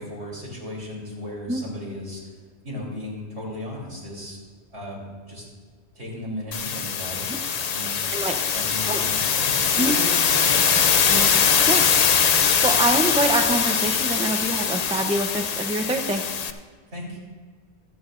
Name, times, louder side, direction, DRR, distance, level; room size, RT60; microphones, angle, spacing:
voice 1, 0.0-2.3 2.6-4.4 4.7-5.0 5.3-5.5 5.9-7.2 7.7-7.9 8.4-11.1 16.9-17.2, left 1 dB, 70° right, -5 dB, 3.7 m, -35 dB
sound 1, 6.5-16.5, left 7 dB, 50° left, 0.5 m, -22 dB
sound 2, 11.1-11.6, right 1 dB, 25° left, 1.7 m, -32 dB
voice 2, 12.4-16.2, right 2 dB, 5° right, 4 dB, 0.5 m, -25 dB
25.0 x 8.7 x 2.5 m, 1.5 s
omnidirectional pair, 1.2 m